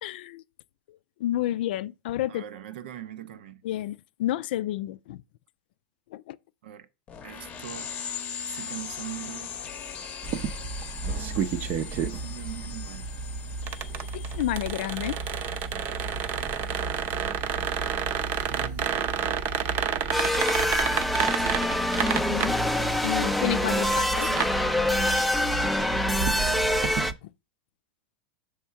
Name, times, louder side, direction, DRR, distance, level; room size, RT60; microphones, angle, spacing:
voice 1, 0.0-0.4 0.9-2.4 3.6-5.2 6.1-6.4 14.1-15.2 22.3-22.5 23.0-24.3 27.2-27.3, left 13 dB, 75° left, 0.4 m, -30 dB
voice 2, 2.3-3.6 6.6-6.9 7.2-7.9 8.4-9.6 11.8-13.1 18.5-19.2 21.4-21.7 23.7-24.5 26.0-27.0, right 12 dB, 80° right, 0.8 m, -41 dB
sound 1, 7.1-17.2, left 7 dB, 25° left, 0.8 m, -40 dB
sound 2, 10.2-27.1, right 6 dB, 40° right, 0.6 m, -31 dB
sound 3, 20.1-27.1, left 1 dB, ahead, 0.4 m, -25 dB
6.3 x 3.6 x 5.6 m
supercardioid pair, 135°, 5 cm